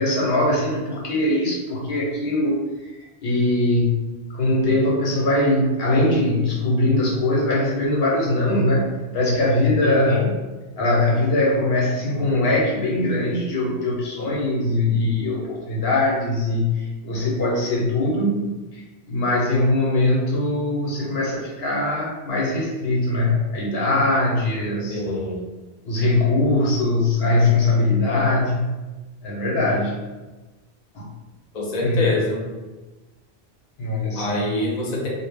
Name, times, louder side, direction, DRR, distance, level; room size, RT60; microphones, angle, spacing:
voice 1, 0.0-2.9 3.2-10.2 10.8-18.8 19.1-25.0 25.8-28.8 29.2-30.0 30.9-31.1 31.8-32.1 33.8-34.6, left 2 dB, 70° left, -3 dB, 0.8 m, -21 dB
voice 2, 9.8-10.3 24.9-25.4 31.5-32.4 34.1-35.1, left 2 dB, 45° left, -3 dB, 0.6 m, -25 dB
2.0 x 2.0 x 3.3 m, 1.2 s
omnidirectional pair, 1.1 m